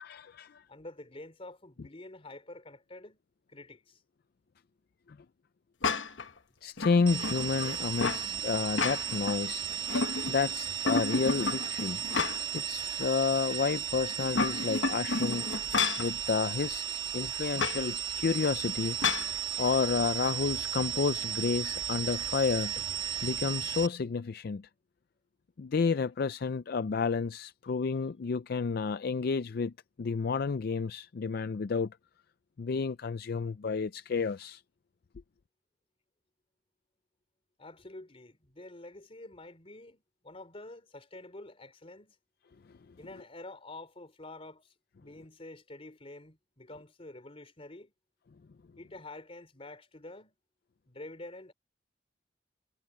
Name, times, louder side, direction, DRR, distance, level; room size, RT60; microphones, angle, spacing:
voice 1, 0.0-0.6 6.6-9.6 10.3-12.0 12.5-15.5 16.0-16.9 17.1-19.0 19.6-22.8 23.2-24.7 25.6-31.9 32.6-34.6, left 5 dB, 55° left, 0.4 m, -30 dB
voice 2, 0.7-3.2 3.5-4.0 37.6-42.2 43.0-47.9 48.8-50.4 50.9-51.5, left 2 dB, 30° left, 3.4 m, -48 dB
sound 1, 5.8-6.3 6.8-8.3 8.6-9.4 9.7-10.5 10.9-12.6 13.0-13.1 14.1-16.1 17.6-17.8 19.0-19.3, left 4 dB, 85° left, 1.2 m, -31 dB
sound 2, 7.1-23.9, right 8 dB, 30° right, 1.9 m, -35 dB
head